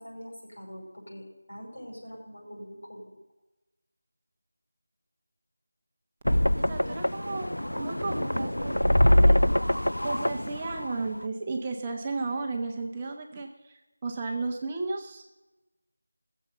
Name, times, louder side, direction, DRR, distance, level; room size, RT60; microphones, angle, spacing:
voice 1, 0.0-3.2 6.7-6.9, equal, 60° left, -1 dB, 5.7 m, -44 dB
sound 1, 6.2-11.2, left 1 dB, 80° left, 0.3 m, -24 dB
voice 2, 6.7-7.5 7.8-9.4 10.0-15.2, right 3 dB, 20° right, 2 dB, 0.8 m, -34 dB
17.0 x 7.4 x 6.7 m, 1.0 s
figure-of-eight pair, 165°, 0 cm